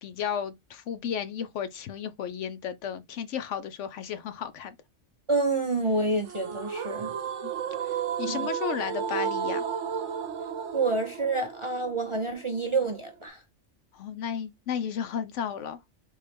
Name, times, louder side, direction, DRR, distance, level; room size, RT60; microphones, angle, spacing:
voice 1, 0.0-4.8 7.4-7.5 7.8-9.6 13.9-15.8, left 8 dB, 70° left, 0.9 m, -33 dB
voice 2, 5.3-7.1 8.3-8.5 10.7-13.4, right 3 dB, 35° right, 0.5 m, -28 dB
sound 1, 6.2-13.3, right 7 dB, 70° right, 1.1 m, -33 dB
4.1 x 3.5 x 3.3 m
omnidirectional pair, 1.3 m